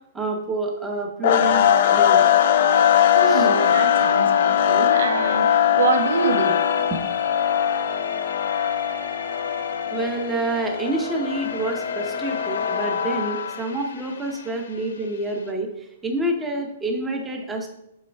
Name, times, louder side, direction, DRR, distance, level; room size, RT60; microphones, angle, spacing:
voice 1, 0.1-2.2 3.3-3.5 9.9-17.7, right 2 dB, 5° right, 2 dB, 0.8 m, -28 dB
sound 1, 1.2-13.6, left 9 dB, 35° left, 0.4 m, -21 dB
sound 2, 1.8-15.5, left 5 dB, 70° left, 0.9 m, -38 dB
voice 2, 2.9-6.6, right 5 dB, 80° right, 6 dB, 1.3 m, -25 dB
8.7 x 6.1 x 3.4 m, 0.82 s
hypercardioid pair, 180°, 0 cm